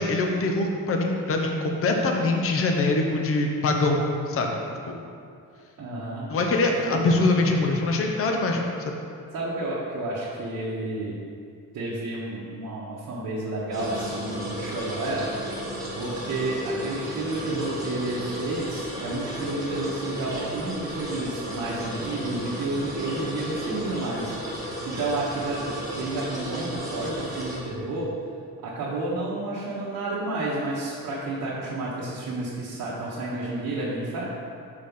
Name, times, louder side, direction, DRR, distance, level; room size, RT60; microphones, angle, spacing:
voice 1, 0.0-4.5 4.9-5.0 6.3-8.6 8.9-9.0, left 2 dB, 40° left, 2 dB, 0.7 m, -23 dB
voice 2, 5.8-6.3 6.9-7.1 9.3-11.2 11.7-15.3 15.9-28.1 28.6-34.2, right 2 dB, 60° right, -8 dB, 1.3 m, -31 dB
sound 1, 13.7-27.6, equal, 10° right, 1.4 m, -34 dB
6.5 x 4.8 x 5.4 m, 2.3 s
cardioid pair, 165°, 35 cm